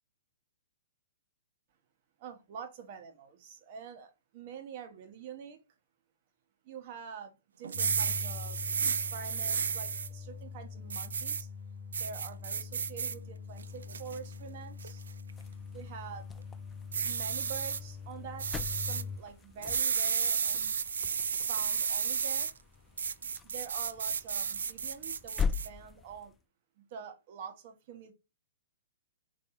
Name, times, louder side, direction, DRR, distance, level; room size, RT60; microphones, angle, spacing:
voice 1, 2.2-5.6 6.6-8.6 9.1-11.5 11.9-15.0 15.7-16.4 17.0-20.8 21.5-22.5 23.4-26.3 26.8-28.1, right 6 dB, 45° right, 0.9 m, -46 dB
sound 1, 7.6-10.1 10.9-11.4 11.9-13.1 13.6-14.2 14.8-15.1 16.9-17.8 18.4-19.0 19.6-22.5 23.0-25.7, right 6 dB, 70° right, 0.3 m, -32 dB
sound 2, 7.7-19.2, left 5 dB, 30° left, 1.1 m, -44 dB
sound 3, 15.3-26.4, left 6 dB, 15° left, 0.3 m, -42 dB
3.4 x 2.6 x 4.3 m
figure-of-eight pair, 120°, 0 cm